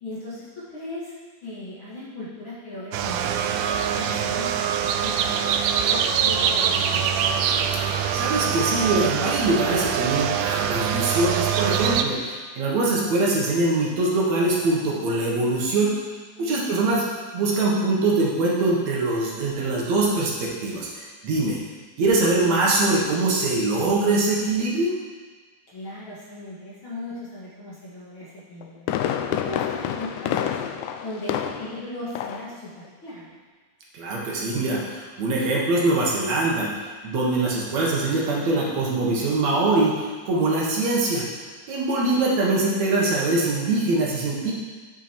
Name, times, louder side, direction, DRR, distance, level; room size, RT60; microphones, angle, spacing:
voice 1, 0.0-1.1 1.4-3.5 3.9-7.0 16.4-16.9 25.7-29.0 29.3-30.6 31.0-33.3, left 2 dB, 45° left, -6 dB, 2.1 m, -37 dB
sound 1, 2.9-12.0, right 8 dB, 90° right, 2.2 m, -24 dB
voice 2, 7.8-15.9 16.4-17.0 17.3-21.6 22.0-24.9 33.9-41.2 41.7-44.5, right 2 dB, 65° right, -4 dB, 2.7 m, -23 dB
Fireworks, 28.4-31.8 32.2-32.5 32.9-33.0, left 9 dB, 85° left, 2.0 m, -28 dB
10.5 x 7.0 x 4.5 m, 1.4 s
omnidirectional pair, 3.6 m